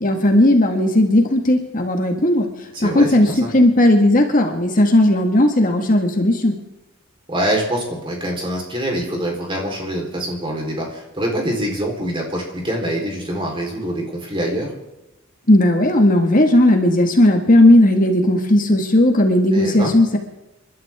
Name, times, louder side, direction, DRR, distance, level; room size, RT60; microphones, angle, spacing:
voice 1, 0.0-2.5 2.8-6.6 15.5-20.2, left 1 dB, 40° left, 3 dB, 1.9 m, -15 dB
voice 2, 2.7-3.5 7.3-14.7 19.5-20.0, right 1 dB, 25° right, 0 dB, 4.2 m, -25 dB
29.5 x 12.0 x 3.7 m, 0.99 s
head